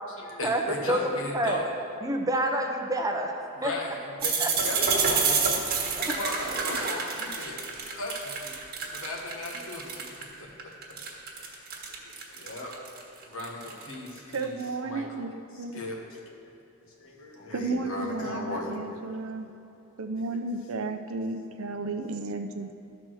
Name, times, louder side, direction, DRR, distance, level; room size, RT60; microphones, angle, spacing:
voice 1, 0.2-1.7 3.5-5.5 5.8-8.6 8.9-10.0 10.4-10.7 11.3-11.7 12.3-12.7 13.2-14.6 14.8-15.3 15.5-16.0 16.8-18.8 20.3-20.4, left 2 dB, 65° left, -1 dB, 1.5 m, -37 dB
voice 2, 0.9-1.6 2.0-3.7 4.4-4.5 6.0-6.2, right 1 dB, 15° right, 2 dB, 0.7 m, -28 dB
sound 1, 4.2-10.2 10.6-14.4, right 5 dB, 50° right, 1.4 m, -28 dB
voice 3, 14.3-15.8 17.5-19.5 20.0-22.7, right 3 dB, 70° right, 6 dB, 0.6 m, -33 dB
12.5 x 4.3 x 6.2 m, 2.7 s
head